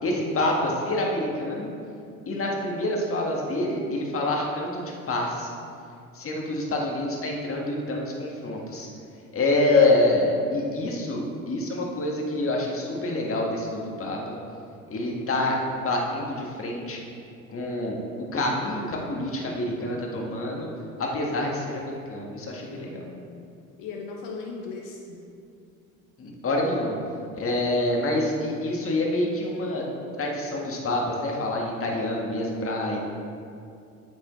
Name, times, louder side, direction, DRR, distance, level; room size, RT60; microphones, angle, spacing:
voice 1, 0.0-1.7 2.2-5.5 6.1-8.9 9.3-14.4 14.9-17.0 17.5-18.0 18.3-20.7 21.0-23.0 26.2-27.0 27.3-29.9 30.2-33.0, left 2 dB, 30° left, -1 dB, 1.7 m, -26 dB
voice 2, 22.9-23.5 23.8-25.2, left 4 dB, 50° left, 0 dB, 1.0 m, -38 dB
8.3 x 8.0 x 3.2 m, 2.4 s
hypercardioid pair, 65°, 42 cm